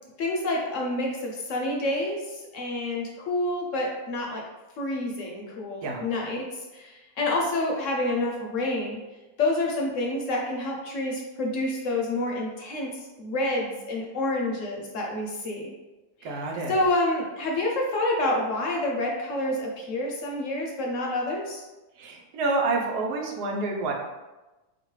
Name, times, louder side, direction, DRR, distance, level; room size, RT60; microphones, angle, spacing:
voice 1, 0.2-4.4 4.8-6.4 6.7-9.0 9.4-12.9 13.2-15.7 16.7-21.6, left 2 dB, 65° left, -1 dB, 0.9 m, -28 dB
voice 2, 16.2-16.8 22.0-23.9, right 3 dB, 85° right, 0 dB, 1.3 m, -28 dB
4.1 x 2.9 x 3.1 m, 1.1 s
omnidirectional pair, 1.7 m